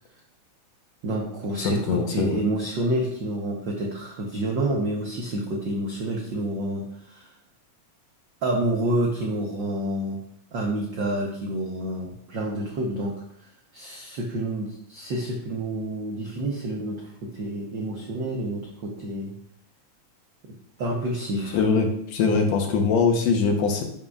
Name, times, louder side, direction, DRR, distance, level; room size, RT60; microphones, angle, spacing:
voice 1, 1.0-7.3 8.4-10.2 10.5-13.2 13.7-19.4 20.8-21.6, right 1 dB, 90° right, 0 dB, 1.0 m, -28 dB
voice 2, 1.6-2.4 21.5-23.8, left 5 dB, 70° left, 2 dB, 2.0 m, -22 dB
11.0 x 5.4 x 2.4 m, 0.70 s
omnidirectional pair, 3.3 m